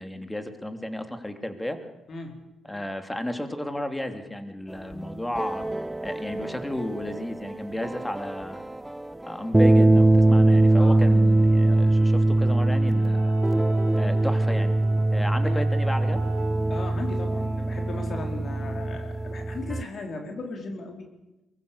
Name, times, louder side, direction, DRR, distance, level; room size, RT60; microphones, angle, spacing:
voice 1, 0.0-1.8 2.6-5.7 6.0-8.6 9.2-13.4 13.9-14.8 15.1-16.2, left 1 dB, 10° left, 7 dB, 3.1 m, -33 dB
voice 2, 2.1-2.4 10.8-11.0 15.4-15.6 16.7-21.1, left 3 dB, 50° left, 3 dB, 4.2 m, -37 dB
sound 1, 4.9-19.8, right 2 dB, 10° right, 1.0 m, -22 dB
sound 2, 12.5-16.7, right 10 dB, 85° right, 3.8 m, -47 dB
23.5 x 21.0 x 7.0 m, 0.97 s
hypercardioid pair, 45°, 0 cm